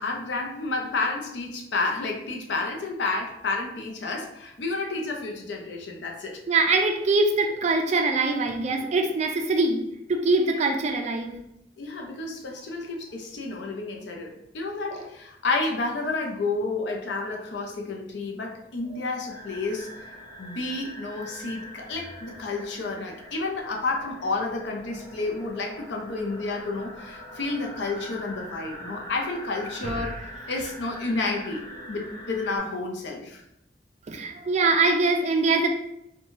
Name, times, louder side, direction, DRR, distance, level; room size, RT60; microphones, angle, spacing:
voice 1, 0.0-6.4 11.8-19.9 20.4-30.2 30.5-31.6 31.9-33.4, left 3 dB, 90° left, 1 dB, 0.5 m, -30 dB
voice 2, 6.5-11.4 14.9-15.1 29.8-30.1 34.1-35.7, right 3 dB, 40° right, 4 dB, 0.4 m, -23 dB
sound 1, 19.3-32.6, equal, 20° left, 0.7 m, -43 dB
3.0 x 2.2 x 2.6 m, 0.80 s
head